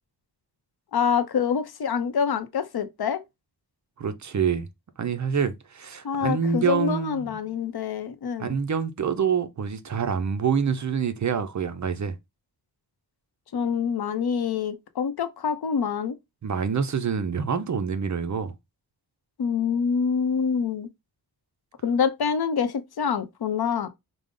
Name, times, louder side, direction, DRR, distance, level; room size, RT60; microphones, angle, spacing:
voice 1, 0.9-3.2 6.0-8.5 13.5-16.2 19.4-20.9 21.8-23.9, left 6 dB, 65° left, 0.6 m, -26 dB
voice 2, 4.0-4.7 5.0-7.5 8.4-12.2 16.4-18.5, right 6 dB, 45° right, 0.5 m, -26 dB
4.9 x 2.0 x 3.6 m
wide cardioid pair, 155°, 41 cm